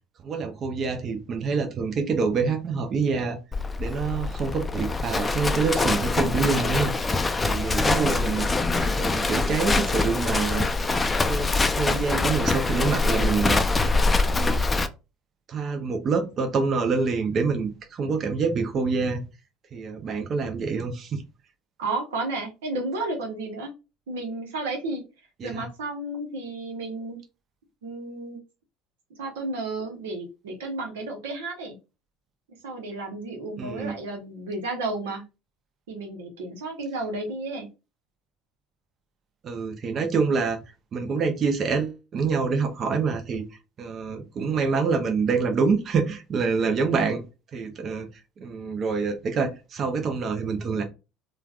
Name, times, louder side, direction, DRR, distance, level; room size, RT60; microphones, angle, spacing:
voice 1, 0.2-3.4 3.8-6.9 7.4-8.5 8.8-10.6 11.2-13.6 14.3-14.6 15.5-19.2 19.7-21.2 25.4-25.7 33.6-33.9 39.4-40.6 40.9-43.5 43.8-47.2 47.5-48.1 48.4-50.8, right 5 dB, 45° right, 0.6 m, -26 dB
Livestock farm animals working animals, 3.5-14.9, left 3 dB, 20° left, 0.4 m, -24 dB
voice 2, 21.8-23.7 24.1-25.0 25.4-27.2 27.8-28.4 29.2-31.7 32.6-35.2 35.9-37.7, right 2 dB, 80° right, 0.9 m, -32 dB
3.2 x 2.3 x 2.3 m
hypercardioid pair, 75°, 0 cm